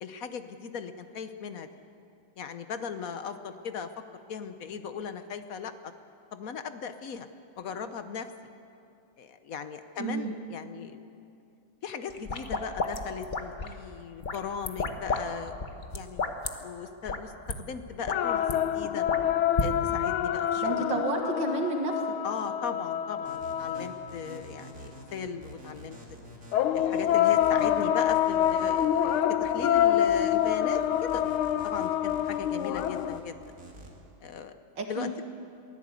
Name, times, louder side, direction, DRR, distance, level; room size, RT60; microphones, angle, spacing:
voice 1, 0.0-1.7 2.4-3.9 4.3-5.9 6.3-7.3 7.6-8.3 9.2-11.0 11.8-15.7 15.9-16.3 16.6-19.0 19.6-21.0 22.2-26.0 26.7-31.2 31.6-33.4 34.2-34.6 34.9-35.2, left 6 dB, 55° left, 9 dB, 1.0 m, -38 dB
voice 2, 10.0-10.4 20.6-21.9 34.8-35.1, right 3 dB, 60° right, 3 dB, 2.2 m, -30 dB
sound 1, 12.1-13.8 14.2-15.2 15.5-16.5 17.1-17.2 17.5-17.6 17.9-18.5 19.1-19.7, left 4 dB, 35° left, 0.8 m, -31 dB
sound 2, 18.1-24.3 26.5-33.2, left 10 dB, 75° left, 1.6 m, -26 dB
sound 3, 23.2-33.9, right 1 dB, 35° right, 2.8 m, -47 dB
22.5 x 15.5 x 8.3 m, 2.6 s
omnidirectional pair, 2.4 m